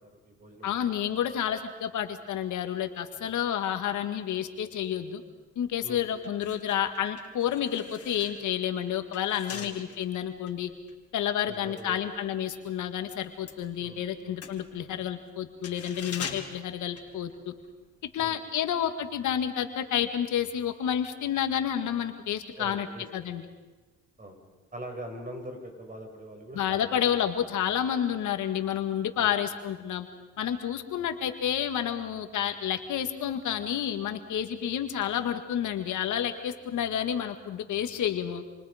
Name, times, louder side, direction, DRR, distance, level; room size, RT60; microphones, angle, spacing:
voice 1, 0.1-1.1 5.8-6.0 9.5-9.8 11.5-12.1 13.8-14.4 18.2-18.6 22.6-23.4 24.2-24.4 24.7-27.1 29.2-29.4 30.9-31.1, right 1 dB, 30° right, 3 dB, 6.7 m, -43 dB
voice 2, 0.6-5.2 5.6-10.7 11.1-17.5 18.1-22.9 23.1-23.4 26.6-30.1 30.4-38.4, left 9 dB, 75° left, 7 dB, 2.0 m, -30 dB
sound 1, 5.6-5.7 6.1-12.8 13.0-17.7 18.0-18.1, left 6 dB, 50° left, 3.7 m, -44 dB
28.0 x 27.5 x 5.2 m, 1.2 s
cardioid pair, 90°, 30 cm